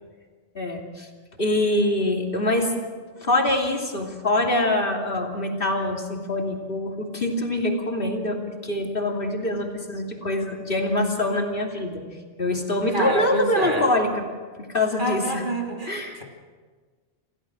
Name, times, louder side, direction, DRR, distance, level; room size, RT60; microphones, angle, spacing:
voice 1, 0.5-1.1 1.4-2.7 3.2-12.0 12.4-14.2 14.6-15.4 15.9-16.2, left 1 dB, 50° left, 1 dB, 3.1 m, -24 dB
voice 2, 12.9-13.9 15.0-16.2, right 1 dB, 45° right, 1 dB, 3.1 m, -28 dB
28.0 x 16.0 x 6.2 m, 1.5 s
omnidirectional pair, 1.2 m